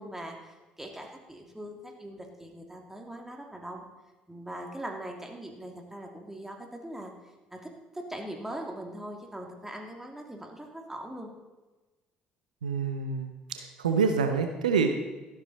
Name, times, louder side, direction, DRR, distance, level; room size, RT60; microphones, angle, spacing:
voice 1, 0.0-3.9 4.3-7.1 7.5-11.3, right 1 dB, 10° right, 2 dB, 2.6 m, -41 dB
voice 2, 12.6-15.0, right 5 dB, 80° right, 6 dB, 0.8 m, -27 dB
13.0 x 12.0 x 4.1 m, 1.2 s
figure-of-eight pair, 50°, 4 cm